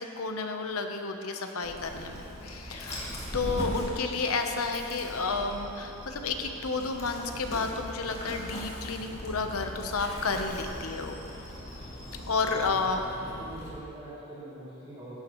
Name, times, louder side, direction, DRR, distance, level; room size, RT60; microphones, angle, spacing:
voice 1, 0.0-11.2 12.1-13.0, left 4 dB, 80° left, 5 dB, 0.9 m, -31 dB
Dog, 1.6-13.7, equal, 30° left, 2.4 m, -40 dB
voice 2, 12.5-15.2, right 1 dB, 25° right, -14 dB, 2.9 m, -45 dB
16.5 x 10.5 x 3.1 m, 2.9 s
head